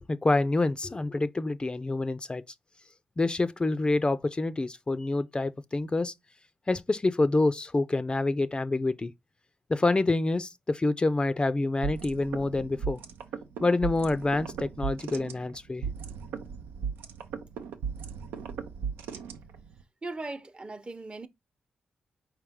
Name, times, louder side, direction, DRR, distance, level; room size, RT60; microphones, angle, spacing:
voice 1, 0.1-2.4 3.2-6.1 6.7-9.1 9.7-13.0 13.6-15.8, left 2 dB, 30° left, 0.4 m, -27 dB
sound 1, 11.8-19.8, right 6 dB, 85° right, 0.5 m, -37 dB
voice 2, 20.0-21.3, right 2 dB, 30° right, 0.8 m, -38 dB
4.6 x 3.2 x 3.5 m
supercardioid pair, 45°, 3 cm